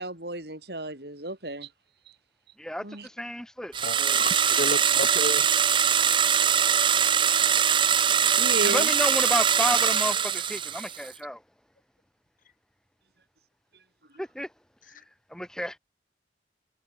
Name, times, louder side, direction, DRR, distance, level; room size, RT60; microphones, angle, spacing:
voice 1, 0.0-1.7 2.8-3.1 8.4-8.9, right 2 dB, 60° right, 7.0 m, -33 dB
voice 2, 2.6-4.2 8.6-11.4 14.2-14.5 14.9-15.0 15.3-15.8, equal, 5° left, 4.3 m, -31 dB
sound 1, 3.7-11.1, right 8 dB, 25° right, 0.6 m, -22 dB
voice 3, 3.8-5.5, left 1 dB, 50° left, 5.3 m, -32 dB
head